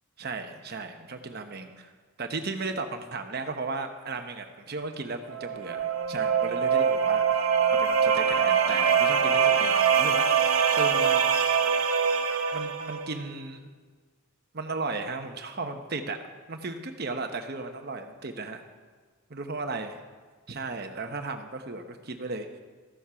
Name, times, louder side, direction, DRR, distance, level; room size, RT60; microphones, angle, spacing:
voice 1, 0.2-1.9 2.2-11.3 12.5-13.6 14.5-16.2 16.5-18.6 19.3-20.0 20.5-22.5, right 3 dB, 50° right, 6 dB, 0.9 m, -35 dB
sound 1, 5.3-13.1, right 7 dB, 85° right, 0.9 m, -23 dB
14.0 x 7.2 x 5.7 m, 1.5 s
head